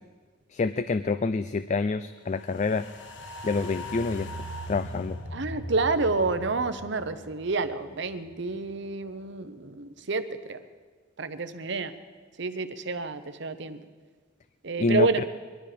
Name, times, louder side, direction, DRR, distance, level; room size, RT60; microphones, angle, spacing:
voice 1, 0.5-2.8 3.4-4.3 4.7-5.2 14.8-15.2, left 3 dB, 35° left, 12 dB, 0.4 m, -27 dB
sound 1, 2.4-8.8 9.1-9.2, equal, 65° left, 1.4 m, -40 dB
voice 2, 5.3-10.6 11.2-11.9 12.4-13.8 14.6-15.2, right 3 dB, 65° right, 10 dB, 0.9 m, -29 dB
22.0 x 12.5 x 5.1 m, 1.5 s
head